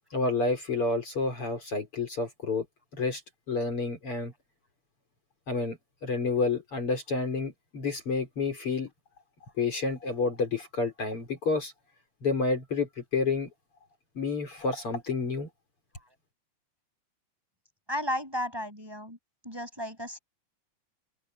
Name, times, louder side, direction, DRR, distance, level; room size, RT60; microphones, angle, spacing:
voice 1, 0.1-2.6 3.0-3.2 3.5-4.3 5.5-8.9 9.6-11.7 12.2-13.5 14.1-15.5, left 3 dB, 45° left, 5.2 m, -29 dB
voice 2, 17.9-19.2 19.4-20.2, left 1 dB, 5° right, 6.4 m, -33 dB
omnidirectional pair, 3.4 m